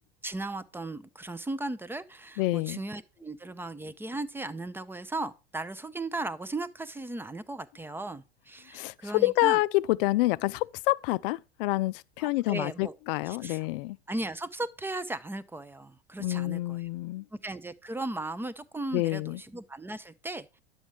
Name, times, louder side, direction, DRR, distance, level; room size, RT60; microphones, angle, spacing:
voice 1, 0.2-9.6 12.2-12.9 13.3-13.7 14.1-16.8 17.3-20.5, right 2 dB, 5° right, 0.5 m, -36 dB
voice 2, 2.4-2.8 8.7-14.0 16.2-17.3 18.9-19.4, left 19 dB, 60° left, 0.4 m, -27 dB
10.5 x 7.2 x 3.3 m
hypercardioid pair, 85°, 32 cm